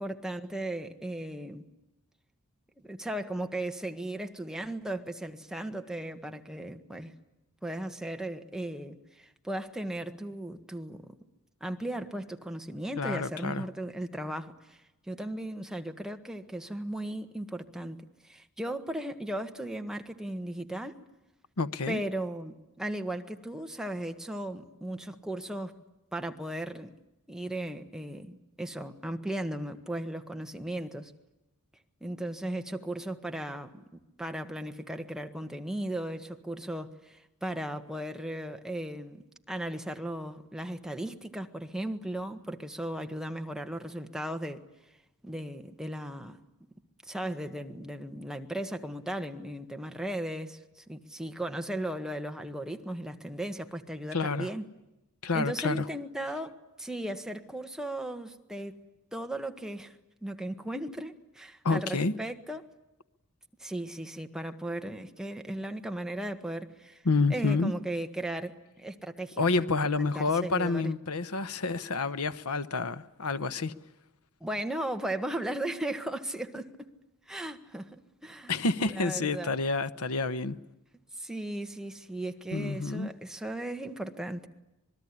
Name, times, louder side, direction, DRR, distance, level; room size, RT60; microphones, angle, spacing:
voice 1, 0.0-1.7 2.8-7.1 7.6-11.1 11.6-14.8 15.1-21.0 21.9-25.8 26.1-26.9 27.3-31.1 32.0-33.8 34.2-44.6 45.2-46.4 47.0-54.7 55.3-58.8 59.1-62.7 63.6-67.0 67.3-69.4 69.8-70.9 74.4-76.9 77.3-78.0 78.2-78.5 78.8-79.5 81.1-84.5, right 1 dB, 5° right, 1.6 m, -36 dB
voice 2, 13.0-13.6 21.6-22.0 54.1-54.5 55.2-55.8 61.6-62.1 67.0-67.7 69.4-73.7 78.5-80.6 82.5-83.1, left 3 dB, 85° left, 1.1 m, -28 dB
26.5 x 21.0 x 10.0 m
head